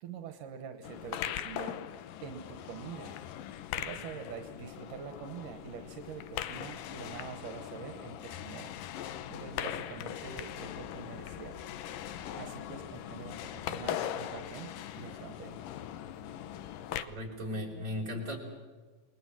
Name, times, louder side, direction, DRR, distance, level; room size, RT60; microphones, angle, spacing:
voice 1, 0.0-1.8 2.2-3.2 3.8-8.7 9.3-11.6 12.3-15.6, right 7 dB, 75° right, 8 dB, 2.7 m, -45 dB
sound 1, 0.8-17.0, left 11 dB, 85° left, 2.6 m, -40 dB
voice 2, 17.0-18.4, left 1 dB, 25° right, 0 dB, 5.0 m, -36 dB
29.0 x 21.0 x 7.5 m, 1.4 s
omnidirectional pair, 3.8 m